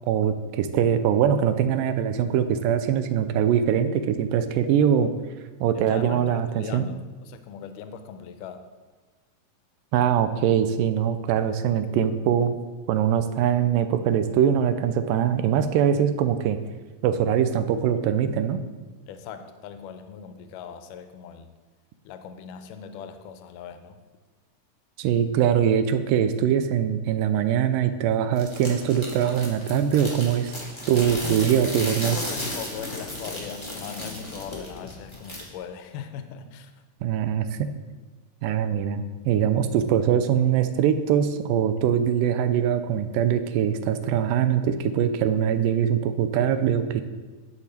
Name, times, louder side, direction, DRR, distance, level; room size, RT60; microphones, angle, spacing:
voice 1, 0.1-5.1 5.6-6.8 9.9-12.6 12.9-16.6 17.0-18.6 25.0-30.6 30.9-32.2 37.0-37.7 38.4-47.0, right 9 dB, 80° right, 11 dB, 2.2 m, -22 dB
voice 2, 4.9-5.2 5.7-8.6 19.1-21.5 22.1-24.0 31.2-31.7 32.1-36.7, left 7 dB, 80° left, 9 dB, 2.1 m, -39 dB
sound 1, 28.4-35.4, left 1 dB, 25° left, 0.6 m, -35 dB
10.0 x 7.1 x 4.2 m, 1.3 s
omnidirectional pair, 4.0 m